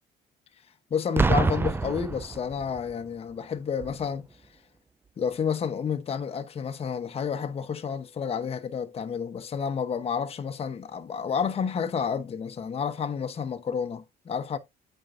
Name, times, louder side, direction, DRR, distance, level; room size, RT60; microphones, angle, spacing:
voice 1, 0.9-4.3 5.2-14.6, left 7 dB, 35° left, 1.0 m, -30 dB
Boom, 1.2-2.9 3.8-4.0, right 4 dB, 15° right, 0.3 m, -26 dB
8.8 x 5.5 x 2.6 m
cardioid pair, 110°, 17 cm